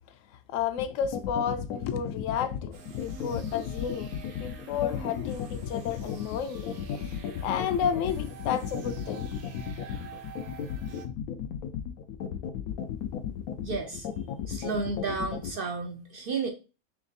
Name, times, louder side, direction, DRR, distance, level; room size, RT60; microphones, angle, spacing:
voice 1, 0.5-7.1 7.4-9.3, left 8 dB, 70° left, 0.9 m, -31 dB
sound 1, 0.8-15.5, left 9 dB, 85° left, 1.1 m, -34 dB
sound 2, 2.7-11.1, right 5 dB, 85° right, 1.2 m, -47 dB
voice 2, 13.6-14.1 14.5-16.5, right 4 dB, 65° right, 0.5 m, -32 dB
3.5 x 3.1 x 3.8 m
omnidirectional pair, 1.5 m